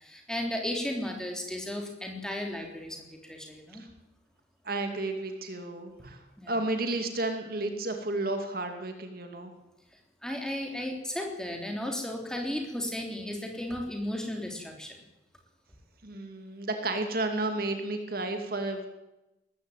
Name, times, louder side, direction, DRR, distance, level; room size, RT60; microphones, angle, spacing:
voice 1, 0.0-3.8 6.4-6.5 10.2-15.0, left 1 dB, 5° left, 2 dB, 3.4 m, -34 dB
voice 2, 4.6-9.5 16.0-18.9, right 2 dB, 50° right, 5 dB, 2.5 m, -32 dB
19.5 x 14.5 x 9.2 m, 0.97 s
head